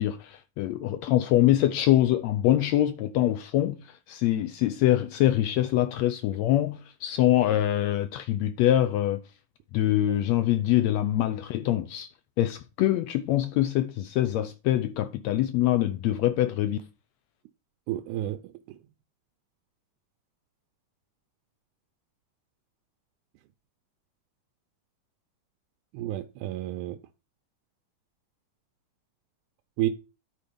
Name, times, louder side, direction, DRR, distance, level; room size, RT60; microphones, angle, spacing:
voice 1, 0.0-3.8 4.1-9.2 9.7-12.1 12.4-16.8, left 13 dB, 80° left, 1.7 m, -24 dB
voice 2, 17.9-18.4 25.9-27.0 29.8-29.9, right 14 dB, 90° right, 2.1 m, -30 dB
11.0 x 4.5 x 5.1 m
omnidirectional pair, 3.5 m